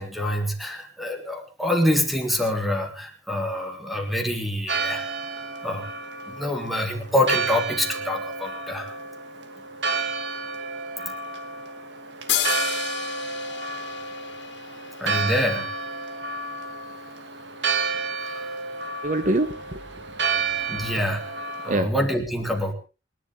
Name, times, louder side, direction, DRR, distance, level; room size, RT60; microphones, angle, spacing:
voice 1, 0.0-5.1 5.6-5.9 6.3-8.9 15.0-15.7 18.2-18.5 20.7-21.2 21.6-22.7, left 1 dB, ahead, 3 dB, 3.4 m, -26 dB
Church bell, 4.7-21.8, right 4 dB, 90° right, 2.5 m, -31 dB
sound 1, 12.3-15.8, left 10 dB, 85° left, 2.3 m, -31 dB
voice 2, 19.0-20.9 21.7-21.9, right 2 dB, 45° right, 11 dB, 1.0 m, -27 dB
28.0 x 11.5 x 3.7 m, 0.33 s
head